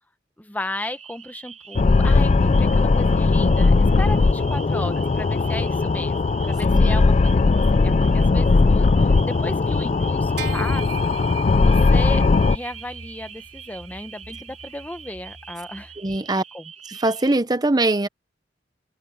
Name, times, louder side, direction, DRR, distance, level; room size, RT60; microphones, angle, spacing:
voice 1, 0.4-11.1 11.6-12.2 12.5-15.9 16.5-16.7, left 1 dB, 10° left, 1.0 m, -35 dB
sound 1, 0.8-17.4, right 7 dB, 40° right, 7.3 m, -44 dB
sound 2, 1.7-12.6, left 3 dB, 40° left, 0.4 m, -18 dB
sound 3, 10.4-16.0, right 7 dB, 70° right, 3.4 m, -39 dB
voice 2, 16.0-16.4 16.9-18.1, right 2 dB, 25° right, 0.8 m, -22 dB
head